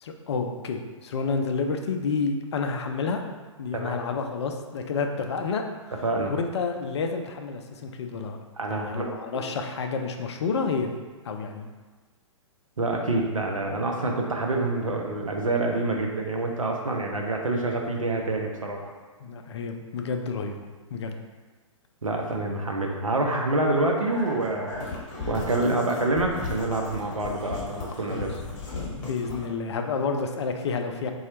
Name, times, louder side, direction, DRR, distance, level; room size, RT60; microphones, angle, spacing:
voice 1, 0.0-3.2 3.6-5.9 6.3-8.4 8.7-10.9 11.2-11.7 19.2-20.7 20.9-21.2 28.1-28.3 29.0-31.1, left 4 dB, 55° left, 5 dB, 0.4 m, -29 dB
voice 2, 8.6-9.1 12.8-18.9 22.0-24.9 25.3-28.3, right 2 dB, 85° right, 1 dB, 0.6 m, -27 dB
sound 1, 24.0-29.5, left 3 dB, 35° left, 1.0 m, -37 dB
4.2 x 2.3 x 2.8 m, 1.3 s
figure-of-eight pair, 115°, 17 cm